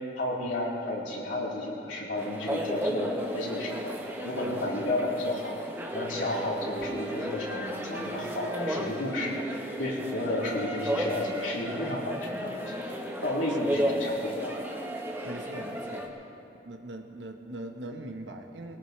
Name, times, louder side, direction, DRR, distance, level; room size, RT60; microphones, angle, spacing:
voice 1, 0.2-3.9 4.2-5.6 5.9-9.3 9.8-12.8 13.2-14.5, left 1 dB, 90° left, -6 dB, 4.1 m, -32 dB
sound 1, 2.2-16.1, equal, 10° right, 1.1 m, -34 dB
voice 2, 15.2-16.1 16.5-18.8, right 1 dB, 75° right, 4 dB, 1.3 m, -41 dB
21.0 x 18.5 x 3.3 m, 2.7 s
head